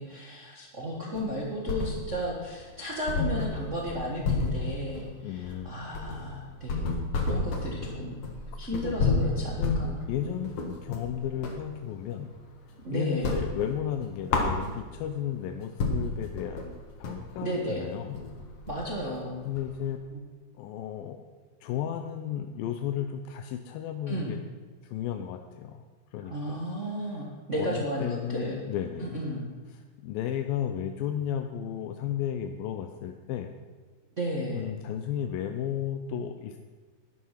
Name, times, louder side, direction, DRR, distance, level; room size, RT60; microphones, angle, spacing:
voice 1, 0.0-6.9 7.2-8.2 8.6-10.4 12.8-13.4 17.4-17.8 18.7-19.4 20.1-20.2 24.1-24.3 26.2-28.6 29.0-29.5 34.2-34.7, equal, 65° right, -3 dB, 0.7 m, -34 dB
sound 1, 1.1-2.3 2.6-2.7 3.1-11.7 12.0-12.8 13.1-15.1 15.5-15.6 15.8-19.9, left 3 dB, 50° left, 2.1 m, -30 dB
voice 2, 5.2-5.7 8.7-8.9 9.6-12.3 12.9-18.2 19.5-20.0 20.6-21.2 21.6-24.4 24.8-25.8 26.1-26.7 27.0-27.2 27.6-29.2 29.7-33.5 34.5-36.6, left 10 dB, 80° left, 6 dB, 2.4 m, -34 dB
11.0 x 11.0 x 5.8 m, 1.4 s
omnidirectional pair, 4.3 m